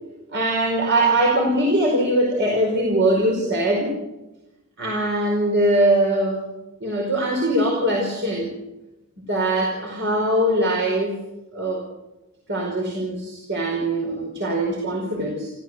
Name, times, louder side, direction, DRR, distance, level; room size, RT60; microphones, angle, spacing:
voice 1, 0.3-4.0 4.8-6.4 6.8-8.5 9.3-11.2 11.5-11.8 12.5-15.5, right 1 dB, 55° right, 0 dB, 5.0 m, -21 dB
28.0 x 15.0 x 8.1 m, 1.0 s
head